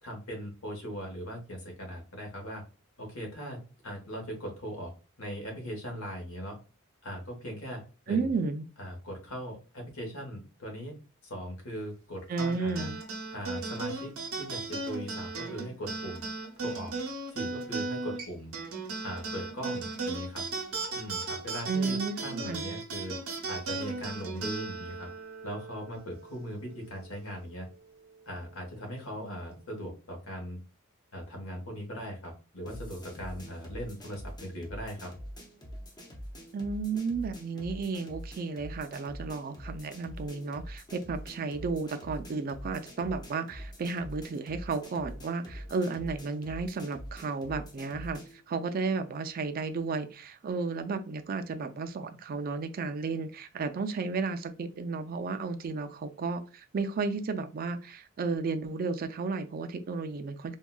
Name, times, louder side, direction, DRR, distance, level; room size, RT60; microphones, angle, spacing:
voice 1, 0.0-2.6 3.0-4.9 5.2-6.6 7.0-8.3 8.8-11.0 11.2-12.9 13.3-16.2 16.6-16.9 17.3-18.5 19.0-20.4 20.9-23.2 23.5-25.1 25.4-27.7 28.3-30.6 31.1-35.1, equal, 70° left, 2 dB, 1.1 m, -39 dB
voice 2, 8.1-8.7 12.3-13.0 21.7-22.8 36.5-48.2 48.5-60.6, right 4 dB, 45° right, 8 dB, 0.3 m, -33 dB
sound 1, 12.4-27.1, right 3 dB, 85° right, 0.7 m, -37 dB
sound 2, 32.7-48.4, equal, 20° left, 0.6 m, -45 dB
3.7 x 2.3 x 2.2 m, 0.34 s
head